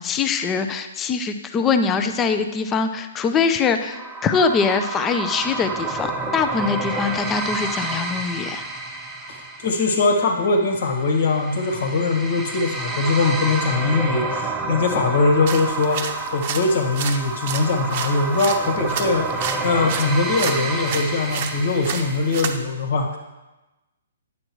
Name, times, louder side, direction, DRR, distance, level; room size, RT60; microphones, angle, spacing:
voice 1, 0.0-8.6, left 5 dB, 20° left, 8 dB, 0.5 m, -23 dB
sound 1, 3.9-22.6, right 3 dB, 10° right, 0.8 m, -29 dB
voice 2, 9.6-23.2, left 3 dB, 60° left, 2 dB, 1.5 m, -21 dB
sound 2, 15.5-22.6, right 7 dB, 45° right, 0.7 m, -32 dB
9.8 x 6.3 x 3.1 m, 1.1 s
hypercardioid pair, 140°, 0 cm